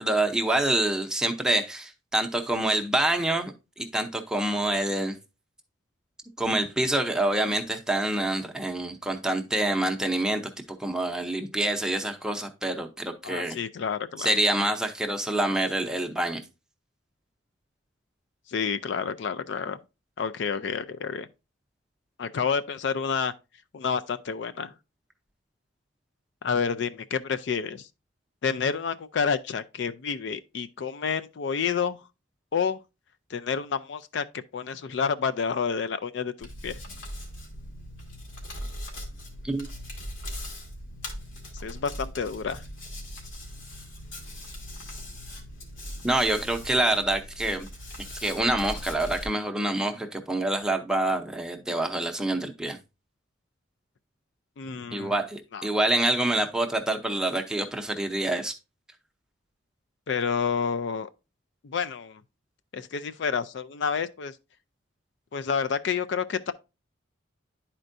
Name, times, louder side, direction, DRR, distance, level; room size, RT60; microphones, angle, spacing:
voice 1, 0.0-5.2 6.4-10.4 10.8-13.6 14.2-16.4 39.4-39.7 46.0-47.7 48.2-52.8 54.9-58.5, right 1 dB, 5° right, 0.6 m, -26 dB
voice 2, 13.2-14.3 18.5-19.8 20.2-21.3 22.2-23.3 23.7-24.7 26.4-27.9 28.4-32.0 32.5-32.8 33.3-36.8 41.6-42.6 54.6-55.1 55.5-55.7 60.1-61.1 61.6-62.2 62.7-64.3 65.3-66.5, left 6 dB, 60° left, 0.4 m, -29 dB
Hands, 36.4-49.3, equal, 75° left, 1.9 m, -40 dB
11.0 x 4.4 x 2.6 m
head